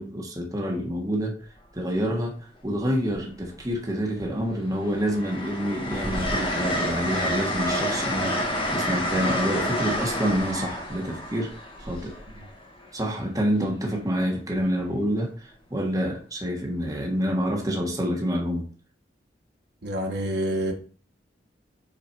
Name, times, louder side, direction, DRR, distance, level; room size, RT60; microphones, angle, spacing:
voice 1, 0.0-1.4 1.7-12.2 12.9-18.7, equal, 20° right, 0 dB, 1.2 m, -27 dB
Train, 1.4-1.7 3.0-3.8 4.2-12.9 14.5-14.8, equal, 30° left, 1.5 m, -29 dB
voice 2, 19.8-20.7, right 1 dB, 65° right, 1 dB, 1.4 m, -27 dB
5.7 x 4.0 x 4.5 m, 0.40 s
head